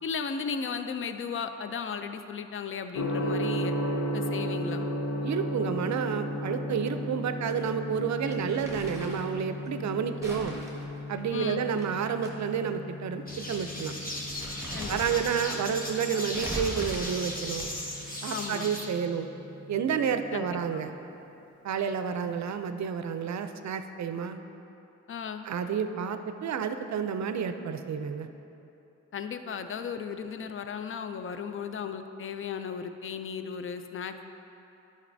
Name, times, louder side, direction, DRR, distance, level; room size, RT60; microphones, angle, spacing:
voice 1, 0.0-3.7 4.1-4.8 11.3-11.7 14.7-15.2 18.3-18.7 20.3-20.9 25.1-25.4 29.1-34.3, left 6 dB, 45° left, 9 dB, 0.4 m, -35 dB
Gong, 2.9-20.8, equal, 75° left, 0.7 m, -36 dB
voice 2, 5.2-10.6 11.1-13.9 14.9-17.7 18.2-19.3 19.7-20.9 21.6-24.4 25.4-28.3, right 7 dB, 70° right, 9 dB, 0.4 m, -30 dB
Crumpling crinkling, 8.3-9.3 10.2-12.3 12.6-12.7 13.5-13.7 14.1-15.6 16.3-17.9, right 1 dB, 10° right, 1.5 m, -40 dB
sound 1, 13.3-18.9, left 1 dB, 30° left, 1.2 m, -37 dB
9.8 x 5.3 x 2.6 m, 2.9 s
cardioid pair, 65°, 29 cm